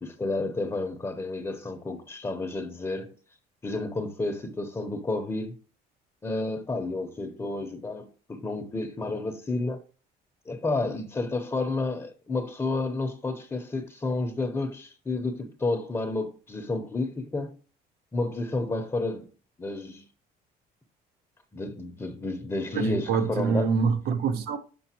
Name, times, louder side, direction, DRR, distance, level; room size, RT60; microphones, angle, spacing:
voice 1, 0.0-3.1 3.6-5.6 6.2-9.8 10.5-17.6 18.1-19.3 19.6-20.0 21.5-23.8, left 2 dB, 20° left, 0.8 m, -31 dB
voice 2, 22.7-24.6, right 5 dB, 70° right, 0.9 m, -25 dB
6.8 x 5.3 x 2.9 m
cardioid pair, 110°, 17 cm